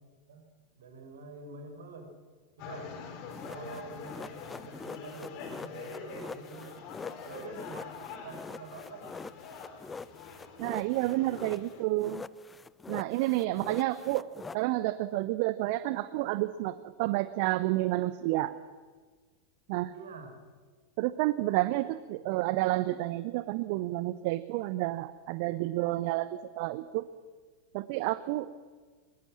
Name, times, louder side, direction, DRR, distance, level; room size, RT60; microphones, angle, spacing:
voice 1, 0.8-2.1 2.6-2.9 3.4-6.9 7.2-9.4 19.9-20.4, right 3 dB, 60° right, 6 dB, 5.1 m, -46 dB
sound 1, 2.6-11.8, left 6 dB, 40° left, 4.5 m, -45 dB
sound 2, 3.3-11.7 12.0-14.6, left 4 dB, 15° left, 0.6 m, -44 dB
voice 2, 10.6-12.2 12.9-14.3 14.5-18.5 19.7-19.9 21.0-27.1 27.7-28.5, right 17 dB, 45° right, 14 dB, 0.8 m, -30 dB
23.5 x 22.0 x 7.4 m, 1.5 s
figure-of-eight pair, 90°, 0 cm